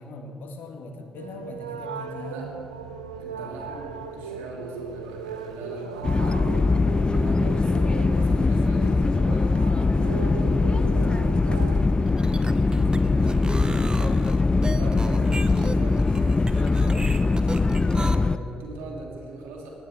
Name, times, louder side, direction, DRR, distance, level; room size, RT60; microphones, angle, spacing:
voice 1, 0.0-2.4 3.3-3.6, left 2 dB, 65° left, 4 dB, 1.7 m, -40 dB
Call to Prayer, 1.2-11.8, right 5 dB, 90° right, 0.5 m, -37 dB
voice 2, 3.2-6.7 6.9-9.5 9.9-10.6 11.3-12.2 12.5-14.3 14.7-16.9 17.8-19.7, right 2 dB, 75° right, -1 dB, 2.7 m, -40 dB
sound 1, 6.0-18.4, left 3 dB, 25° left, 0.4 m, -21 dB
sound 2, 12.1-18.2, right 2 dB, 25° right, 0.9 m, -36 dB
19.5 x 17.0 x 3.6 m, 2.9 s
hypercardioid pair, 40°, 4 cm